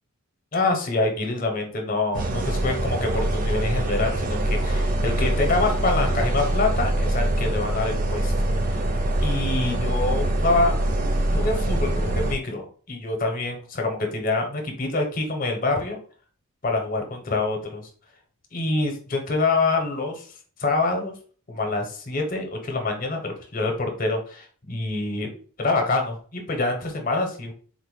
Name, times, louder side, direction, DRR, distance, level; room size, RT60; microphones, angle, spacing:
voice 1, 0.5-8.8 9.2-10.7 11.3-16.0 16.6-17.8 18.5-20.3 20.6-21.1 21.5-25.3 25.6-27.5, left 3 dB, 40° left, 3 dB, 0.6 m, -26 dB
sound 1, 2.1-12.3, right 1 dB, 40° right, 0.3 m, -24 dB
3.7 x 2.1 x 3.1 m, 0.43 s
head